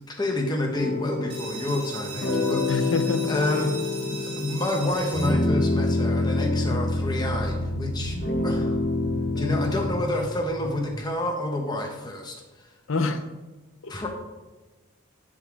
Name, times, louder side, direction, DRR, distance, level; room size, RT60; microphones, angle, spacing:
voice 1, 0.1-2.9 3.3-3.7 4.0-8.2 8.4-8.8 9.4-12.4 13.9-14.1, left 1 dB, 20° left, 1 dB, 1.0 m, -29 dB
sound 1, 0.7-10.0, left 2 dB, 45° left, 1.5 m, -27 dB
sound 2, 1.3-6.7, right 3 dB, 25° right, 1.5 m, -40 dB
voice 2, 2.7-3.3 12.9-13.2 13.8-14.1, left 3 dB, 65° left, 9 dB, 0.6 m, -27 dB
sound 3, 4.8-11.0, right 1 dB, 70° right, 1.9 m, -40 dB
8.9 x 3.7 x 4.6 m, 1.2 s
head